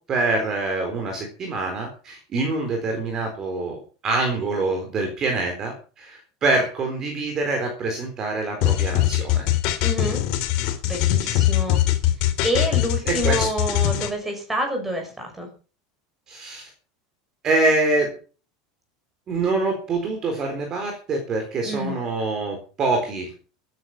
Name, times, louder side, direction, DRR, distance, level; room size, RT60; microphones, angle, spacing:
voice 1, 0.1-9.5 13.1-13.5 16.3-16.7 17.4-18.1 19.3-23.3, right 3 dB, 25° right, 3 dB, 4.2 m, -25 dB
sound 1, 8.6-14.1, left 13 dB, 50° left, 3.2 m, -21 dB
voice 2, 9.8-10.2 10.8-11.8 12.2-15.5 21.6-22.0, equal, 5° right, 2 dB, 6.0 m, -28 dB
16.0 x 10.5 x 5.9 m, 0.37 s
supercardioid pair, 165°, 2 cm